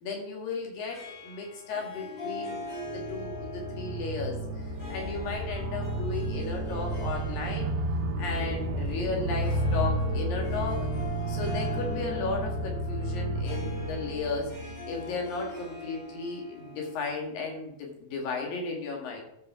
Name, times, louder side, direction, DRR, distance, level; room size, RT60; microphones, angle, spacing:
voice 1, 0.0-4.4 4.7-7.7 8.2-10.8 11.3-19.2, left 4 dB, 65° left, 1 dB, 3.5 m, -35 dB
Harp, 0.9-17.7, left 3 dB, 85° left, 7.3 m, -42 dB
sound 1, 2.5-15.3, right 1 dB, 80° right, 2.6 m, -32 dB
13.5 x 5.3 x 5.6 m, 0.78 s
omnidirectional pair, 4.6 m